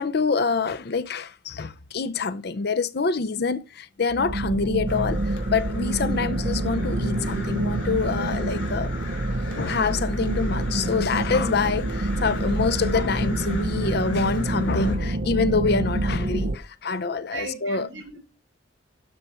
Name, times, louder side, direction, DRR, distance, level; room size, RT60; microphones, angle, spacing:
voice 1, 0.0-8.9 9.3-17.9, left 4 dB, 55° left, 0.6 m, -26 dB
sound 1, 4.1-16.6, right 1 dB, 50° right, 0.8 m, -27 dB
Crow, 4.9-15.0, left 3 dB, 75° left, 2.9 m, -41 dB
voice 2, 17.0-18.2, right 3 dB, 75° right, 5.2 m, -38 dB
12.5 x 4.8 x 4.4 m
head